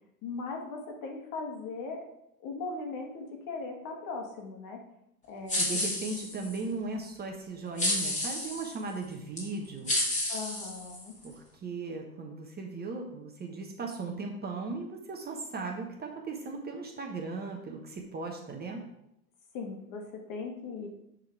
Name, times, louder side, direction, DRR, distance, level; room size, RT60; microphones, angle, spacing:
voice 1, 0.2-2.1 2.4-4.8 5.3-5.8 10.3-11.1 19.5-20.9, left 4 dB, 40° left, 2 dB, 1.8 m, -39 dB
sound 1, 5.5-6.6 7.8-8.7 9.4-9.5 9.9-11.3, left 1 dB, 15° left, 2.8 m, -31 dB
voice 2, 5.5-9.9 11.2-18.9, right 3 dB, 20° right, 2 dB, 1.1 m, -37 dB
9.6 x 3.9 x 4.8 m, 0.81 s
hypercardioid pair, 95°, 47 cm